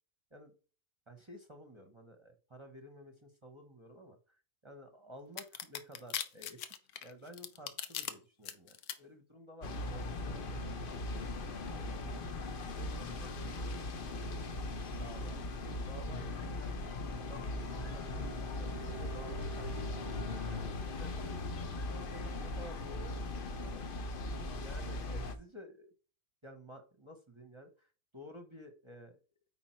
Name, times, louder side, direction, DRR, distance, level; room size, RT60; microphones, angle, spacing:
voice 1, 1.1-6.6 7.0-10.6 11.7-16.9 17.1-19.8 20.5-24.1 24.5-25.9 26.4-29.2, equal, 25° right, 6 dB, 0.9 m, -53 dB
sound 1, 5.4-8.1 8.5-8.9, left 10 dB, 80° left, 1.2 m, -39 dB
sound 2, 9.6-25.4, left 2 dB, 45° left, 0.8 m, -39 dB
Bowed string instrument, 17.0-21.3, right 6 dB, 30° left, 2.5 m, -50 dB
8.9 x 4.0 x 4.4 m, 0.37 s
omnidirectional pair, 1.6 m